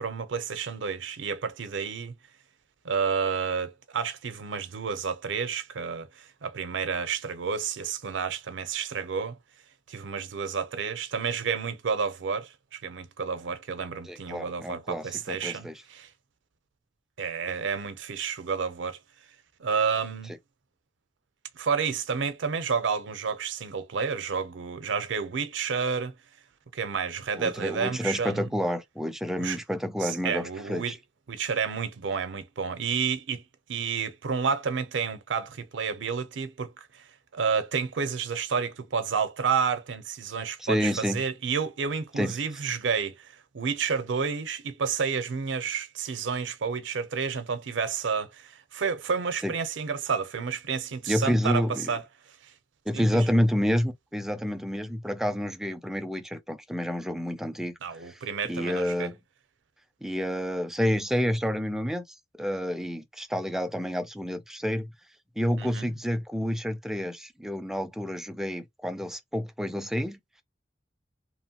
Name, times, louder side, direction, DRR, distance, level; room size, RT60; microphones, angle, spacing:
voice 1, 0.0-2.1 2.8-9.4 9.9-16.1 17.2-19.0 19.6-20.3 21.5-26.1 26.7-28.5 29.4-29.6 30.0-30.9 31.3-33.4 33.7-51.6 51.9-52.0 52.4-52.5 52.9-53.1 57.8-59.1 65.6-65.9, right 6 dB, 85° right, 0.5 m, -30 dB
voice 2, 14.1-15.8 27.4-31.0 40.6-41.2 42.2-42.4 49.4-49.5 51.1-52.0 52.9-57.7 58.0-58.2 58.5-59.2 60.0-64.9 65.4-70.2, equal, ahead, 0.3 m, -29 dB
2.9 x 2.1 x 2.8 m
head